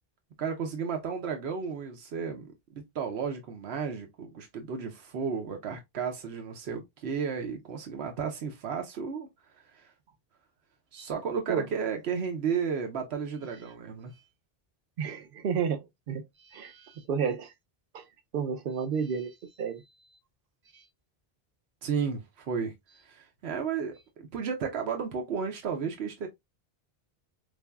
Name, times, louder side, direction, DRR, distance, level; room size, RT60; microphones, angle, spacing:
voice 1, 0.4-2.5 2.9-9.3 9.5-9.9 10.9-14.1 21.8-22.7 23.0-26.3, right 6 dB, 90° right, 1.0 m, -33 dB
voice 2, 15.0-17.5 17.9-18.1 18.3-19.8 20.7-20.8, right 6 dB, 65° right, 0.8 m, -32 dB
4.7 x 2.6 x 2.2 m
omnidirectional pair, 1.0 m